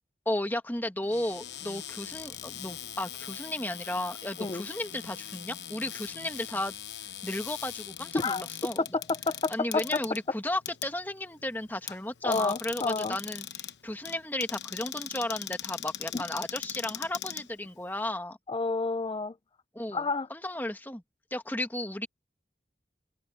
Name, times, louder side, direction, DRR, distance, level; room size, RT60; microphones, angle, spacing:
voice 1, 0.2-6.8 7.2-8.8 9.5-18.4 19.7-20.0 20.3-21.0 21.3-22.1, left 1 dB, 10° left, 1.5 m, -34 dB
Cupboard open or close, 1.0-18.1, left 11 dB, 80° left, 1.1 m, -41 dB
voice 2, 8.8-9.8 12.2-13.2 16.1-16.2 18.5-19.3 19.9-20.3, left 3 dB, 25° left, 0.4 m, -29 dB
head